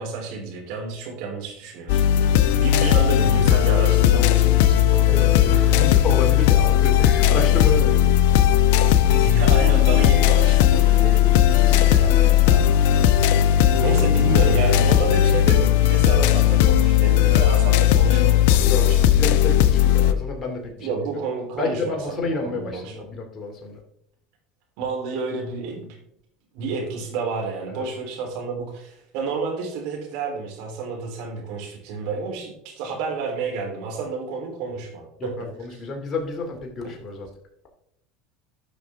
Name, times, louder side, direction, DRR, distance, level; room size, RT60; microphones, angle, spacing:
voice 1, 0.0-5.7 9.1-13.3 13.8-19.0 20.8-23.0 24.8-25.9 26.5-35.3 35.7-35.8 36.8-36.9, right 4 dB, 65° right, 1 dB, 3.4 m, -30 dB
sound 1, 1.9-20.1, left 11 dB, 70° left, 0.6 m, -17 dB
voice 2, 5.1-8.1 11.6-11.8 18.7-20.9 21.6-23.8 27.7-27.9 35.2-37.3, left 3 dB, 35° left, 1 dB, 2.5 m, -30 dB
12.5 x 6.2 x 3.5 m, 0.75 s
hypercardioid pair, 85°, 0 cm